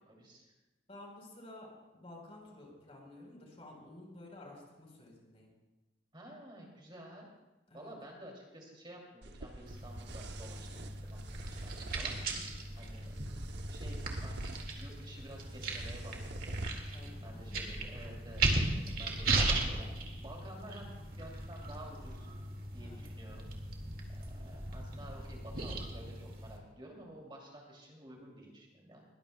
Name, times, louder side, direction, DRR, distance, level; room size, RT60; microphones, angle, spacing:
voice 1, 0.1-0.5 6.1-7.3 7.7-12.2 12.8-14.4 14.7-16.6 17.2-19.9 20.2-22.3 22.7-23.5 24.1-29.0, right 1 dB, 30° right, -1 dB, 2.9 m, -52 dB
voice 2, 0.9-5.5 7.7-7.9 12.3-12.7 16.9-17.6 22.8-23.0, left 1 dB, 35° left, 0 dB, 4.2 m, -52 dB
sound 1, 9.2-16.7, right 2 dB, 75° right, 0.9 m, -45 dB
sound 2, 9.7-26.6, right 2 dB, 55° right, 2.1 m, -37 dB
21.5 x 19.0 x 2.3 m, 1.1 s
head